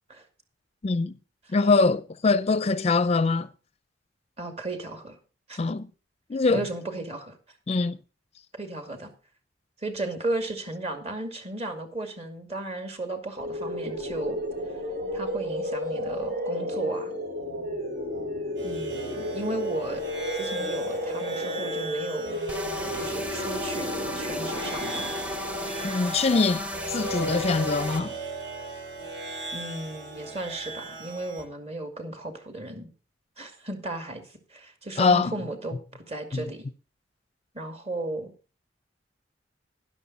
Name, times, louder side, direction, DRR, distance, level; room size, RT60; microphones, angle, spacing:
voice 1, 0.8-1.1 1.5-3.5 5.6-5.9 6.3-6.6 7.7-8.0 25.8-28.1 35.0-35.3 36.3-36.4, left 4 dB, 35° left, 0.5 m, -23 dB
voice 2, 4.4-5.2 5.5-5.6 6.5-7.4 8.6-9.1 9.8-14.4 15.1-17.1 18.6-20.0 20.3-22.4 22.9-25.1 29.5-32.9 33.4-36.6 37.5-38.3, right 2 dB, 35° right, 2.3 m, -35 dB
sound 1, 13.4-26.2, left 1 dB, 50° right, 3.0 m, -33 dB
sound 2, 18.6-31.4, right 2 dB, 70° right, 5.6 m, -38 dB
sound 3, 22.5-28.0, left 1 dB, 5° right, 0.8 m, -34 dB
12.5 x 11.0 x 4.1 m
head